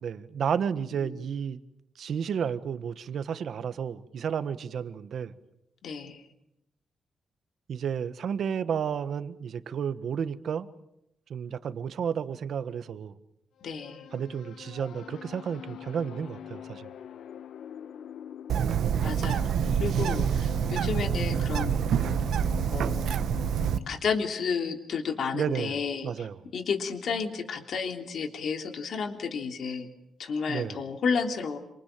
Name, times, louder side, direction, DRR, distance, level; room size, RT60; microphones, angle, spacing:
voice 1, 0.0-1.6 2.0-5.3 7.7-10.7 11.3-13.1 14.1-16.9 25.3-25.8 26.0-26.4 30.5-30.8, right 7 dB, 60° right, 1.4 m, -32 dB
voice 2, 5.8-6.2 13.6-14.1 19.0-21.7 22.7-23.0 23.9-26.3 26.5-29.9 30.2-31.6, left 5 dB, 55° left, 3.3 m, -32 dB
sound 1, 13.6-23.9, left 10 dB, 75° left, 1.0 m, -42 dB
Bird, 18.5-23.8, right 8 dB, 75° right, 1.3 m, -27 dB
29.0 x 26.5 x 7.6 m
wide cardioid pair, 175°, 0 cm